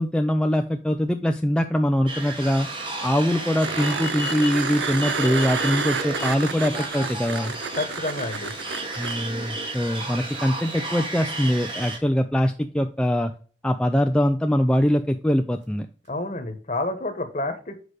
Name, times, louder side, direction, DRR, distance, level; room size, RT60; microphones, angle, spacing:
voice 1, 0.0-2.7 3.0-7.5 9.0-13.3 13.6-15.9, equal, 5° left, 5 dB, 0.3 m, -23 dB
sound 1, 2.1-12.0, right 2 dB, 25° right, 1.4 m, -32 dB
sound 2, 3.6-9.1 11.8-11.9, right 5 dB, 85° right, 0.7 m, -30 dB
voice 2, 7.7-8.5 16.1-17.8, left 2 dB, 40° left, 7 dB, 1.2 m, -29 dB
6.5 x 5.1 x 4.8 m, 0.41 s
head